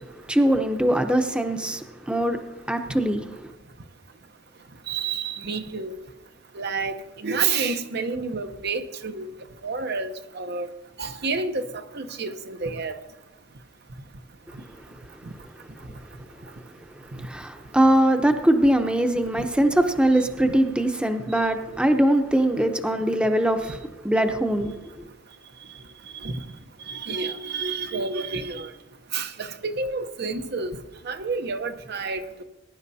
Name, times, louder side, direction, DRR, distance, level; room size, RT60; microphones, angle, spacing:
voice 1, 0.3-2.4 2.7-3.5 17.2-23.8 24.0-24.7, right 1 dB, 5° right, 6 dB, 0.8 m, -22 dB
voice 2, 4.9-6.0 6.5-9.3 9.6-10.7 11.0-11.7 11.9-12.9 26.2-26.4 26.9-28.7 29.1-30.8 31.0-32.4, right 4 dB, 60° right, 8 dB, 0.9 m, -29 dB
21.0 x 11.0 x 2.8 m, 1.0 s
head